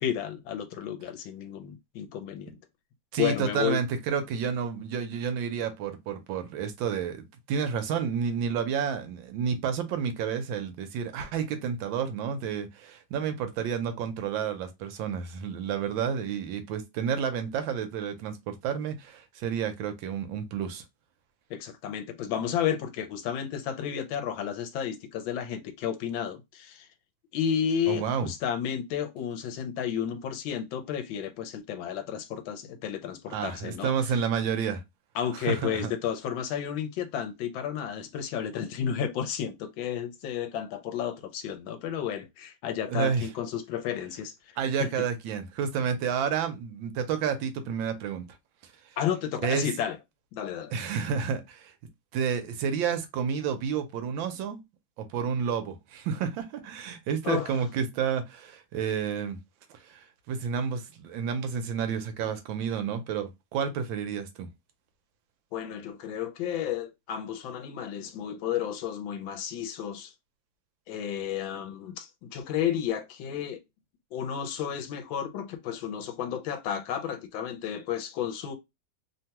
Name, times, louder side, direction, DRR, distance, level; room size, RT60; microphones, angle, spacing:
voice 1, 0.0-2.5 3.2-3.8 21.5-26.9 27.3-34.1 35.1-44.9 49.0-50.0 50.3-50.7 57.2-57.6 65.5-70.1 70.9-73.6 74.1-78.5, left 9 dB, 80° left, 1.4 m, -32 dB
voice 2, 3.1-20.8 27.9-28.3 33.3-34.8 35.5-35.9 42.9-43.3 44.6-48.2 49.4-49.6 50.7-51.7 52.1-54.6 55.0-59.4 59.8-64.5, right 7 dB, 80° right, 1.4 m, -30 dB
3.4 x 2.2 x 2.8 m
omnidirectional pair, 2.1 m